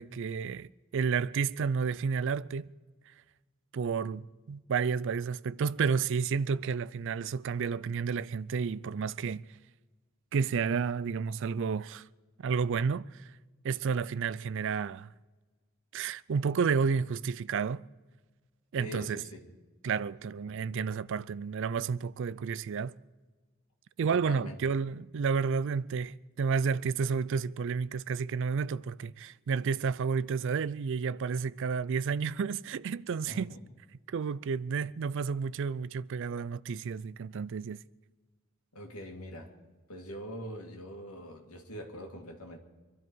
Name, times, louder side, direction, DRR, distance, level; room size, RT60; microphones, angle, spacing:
voice 1, 0.0-2.7 3.7-9.5 10.3-12.1 12.4-13.3 13.6-15.1 15.9-17.8 18.7-19.2 19.8-22.9 24.0-33.5 34.1-37.8, right 5 dB, 55° right, 0.4 m, -31 dB
voice 2, 18.7-19.4 24.1-24.6 33.3-33.6 38.7-39.5 39.9-42.6, equal, 85° left, 2.4 m, -43 dB
24.5 x 12.5 x 4.6 m
head